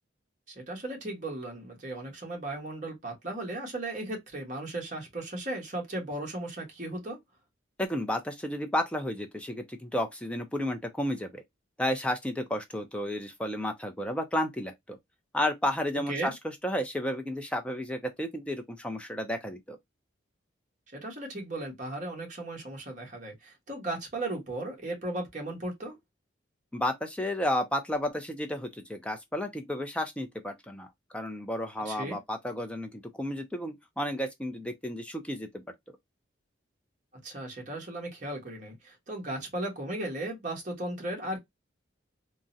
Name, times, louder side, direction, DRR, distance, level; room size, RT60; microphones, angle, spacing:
voice 1, 0.5-7.2 16.1-16.3 20.9-26.0 31.8-32.2 37.2-41.4, right 1 dB, 40° right, 1.2 m, -36 dB
voice 2, 7.8-11.4 11.8-15.0 15.3-16.3 16.6-19.8 26.7-30.9 31.1-35.6, left 1 dB, 5° left, 0.4 m, -32 dB
3.6 x 2.1 x 2.6 m
head